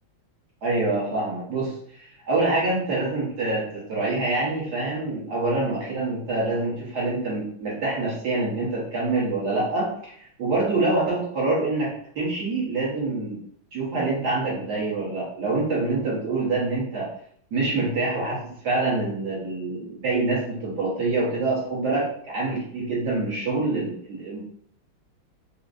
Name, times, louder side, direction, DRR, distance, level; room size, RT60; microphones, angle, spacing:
voice 1, 0.6-13.4 13.7-17.1 17.5-18.4 18.6-24.4, right 3 dB, 55° right, -6 dB, 1.6 m, -26 dB
4.9 x 2.1 x 2.5 m, 0.62 s
omnidirectional pair, 2.2 m